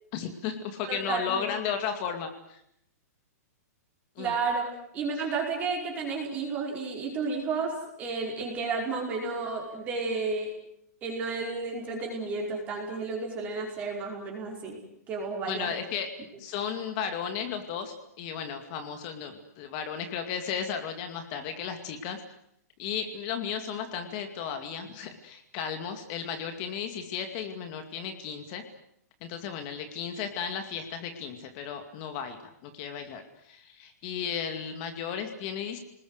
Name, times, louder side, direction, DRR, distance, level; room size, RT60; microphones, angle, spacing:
voice 1, 0.1-2.6 4.2-4.4 5.3-5.4 15.4-16.1 16.4-22.2 22.8-28.6 29.2-35.8, left 7 dB, 30° left, 6 dB, 2.4 m, -34 dB
voice 2, 0.9-1.4 4.2-10.5 11.0-14.8 15.1-15.7, right 4 dB, 15° right, 0 dB, 5.1 m, -32 dB
29.5 x 20.5 x 8.1 m, 0.74 s
hypercardioid pair, 170°, 9 cm